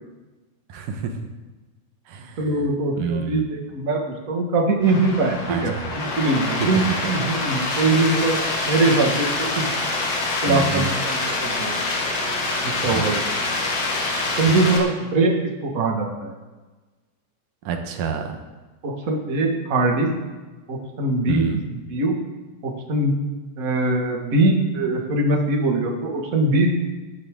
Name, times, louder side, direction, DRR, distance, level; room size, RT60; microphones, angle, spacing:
voice 1, 0.7-1.1 2.1-2.4 3.0-3.4 5.5-5.9 10.5-10.9 12.8-13.2 17.7-18.4 21.3-21.6, right 6 dB, 80° right, 4 dB, 2.8 m, -28 dB
voice 2, 2.4-8.4 8.6-9.6 10.4-11.8 12.8-13.2 14.4-16.3 18.8-20.1 20.7-21.4 21.7-22.2 22.6-23.1 23.6-26.7, right 2 dB, 30° right, 1 dB, 1.8 m, -22 dB
sound 1, 4.8-14.8, left 2 dB, 50° left, 2.9 m, -25 dB
20.0 x 11.0 x 3.8 m, 1.2 s
omnidirectional pair, 3.6 m